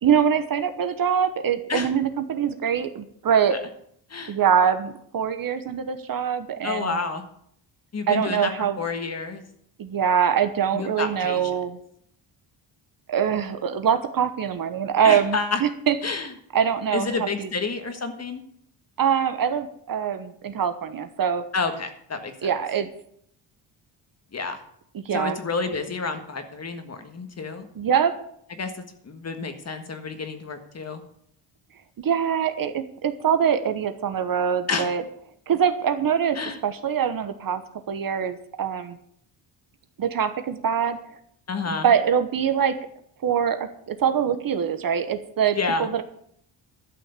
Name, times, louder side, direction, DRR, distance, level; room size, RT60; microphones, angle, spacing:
voice 1, 0.0-3.6 4.3-7.0 8.1-8.8 9.8-11.8 13.1-15.9 16.5-17.5 19.0-21.4 22.4-22.9 24.9-25.4 27.8-28.1 32.0-35.0 35.5-36.4 36.6-37.6 37.9-39.0 40.0-41.0 41.7-42.8 43.2-46.0, right 8 dB, 45° right, 10 dB, 1.1 m, -23 dB
voice 2, 6.6-7.2 7.9-8.5 8.8-9.4 10.7-11.5 15.0-15.6 16.0-16.3 16.9-18.4 21.5-22.5 24.3-24.6 25.1-27.7 28.6-31.0 34.7-34.9 36.3-36.6 41.5-41.9 45.5-45.9, left 4 dB, 35° left, 7 dB, 1.6 m, -29 dB
12.0 x 6.5 x 8.2 m, 0.68 s
cardioid pair, 135°, 46 cm